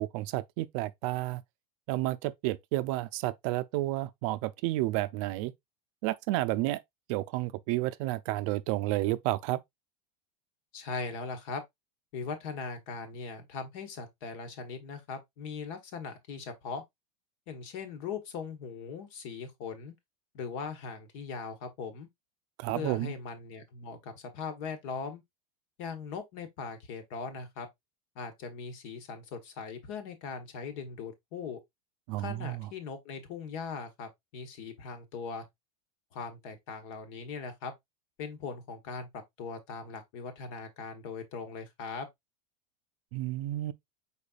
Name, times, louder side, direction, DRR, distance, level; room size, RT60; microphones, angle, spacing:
voice 1, 0.0-1.4 1.9-5.5 6.0-6.8 7.1-9.6 22.6-23.1 32.1-32.7 43.1-43.7, right 17 dB, 55° right, 0.5 m, -31 dB
voice 2, 10.7-11.6 12.1-16.8 17.5-19.9 20.3-22.1 22.7-25.2 25.8-27.7 28.1-31.6 32.2-35.4 36.1-37.7 38.2-42.1, left 5 dB, 60° left, 1.4 m, -40 dB
5.1 x 4.3 x 2.4 m
supercardioid pair, 135°, 20 cm